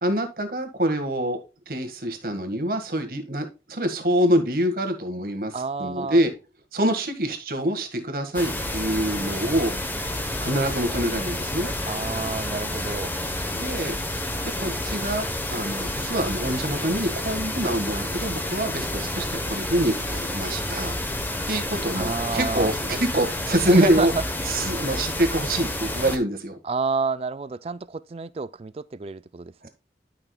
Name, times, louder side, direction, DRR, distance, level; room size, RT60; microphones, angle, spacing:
voice 1, 0.0-1.4 1.7-6.3 6.7-9.8 10.4-11.7 13.5-13.9 14.6-20.9 21.5-24.1 24.4-26.6 29.6-29.7, right 1 dB, 55° right, 1.6 m, -25 dB
voice 2, 5.5-6.2 11.9-13.1 22.0-22.7 23.7-24.2 26.6-29.7, right 4 dB, 35° right, 0.3 m, -28 dB
sound 1, 8.3-26.2, left 1 dB, 10° left, 0.9 m, -29 dB
12.5 x 5.9 x 2.3 m
head